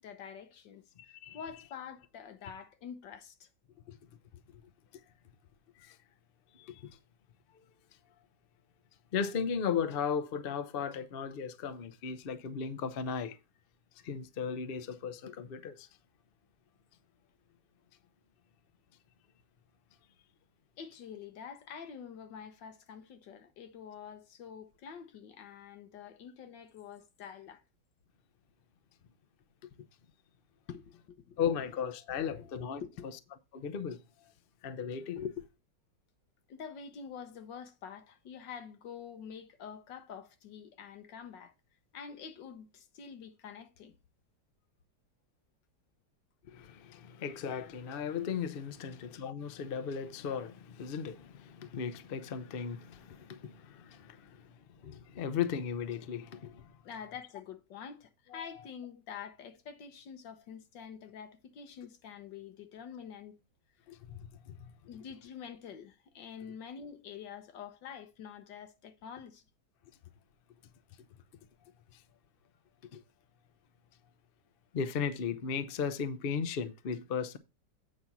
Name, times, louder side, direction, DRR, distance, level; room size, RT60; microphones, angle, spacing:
voice 1, 0.0-3.5 20.8-27.6 30.7-31.4 32.2-32.5 32.8-33.1 36.5-41.5 41.9-43.9 56.8-63.3 64.9-69.4, left 7 dB, 85° left, 1.6 m, -47 dB
voice 2, 1.0-1.4 3.9-4.0 5.8-6.0 6.5-7.0 9.1-13.4 14.0-15.9 31.4-32.8 33.5-34.0 34.6-35.5 46.5-54.5 54.8-56.8 63.9-64.6 71.9-72.0 72.9-73.0 74.7-77.4, left 7 dB, 55° left, 0.6 m, -36 dB
8.6 x 4.2 x 5.9 m
omnidirectional pair, 1.9 m